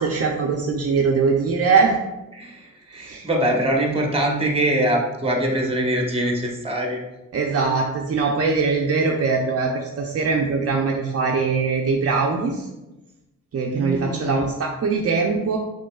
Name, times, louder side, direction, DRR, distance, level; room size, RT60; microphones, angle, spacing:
voice 1, 0.0-1.9 3.0-3.3 7.3-12.7 13.5-15.6, right 4 dB, 50° right, 0 dB, 0.6 m, -22 dB
voice 2, 2.3-7.0 13.7-14.4, right 1 dB, 20° right, 1 dB, 1.0 m, -23 dB
5.2 x 3.7 x 2.3 m, 0.98 s
cardioid pair, 75°, 31 cm